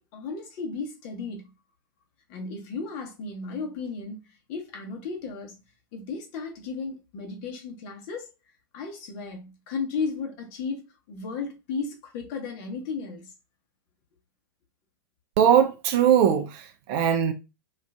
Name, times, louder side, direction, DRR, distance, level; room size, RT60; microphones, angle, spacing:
voice 1, 0.0-1.5 2.3-5.6 5.9-8.3 8.7-13.3, left 4 dB, 40° left, 0.9 m, -34 dB
voice 2, 15.4-17.3, right 9 dB, 35° right, 0.4 m, -21 dB
2.4 x 2.4 x 3.2 m
figure-of-eight pair, 100°, 12 cm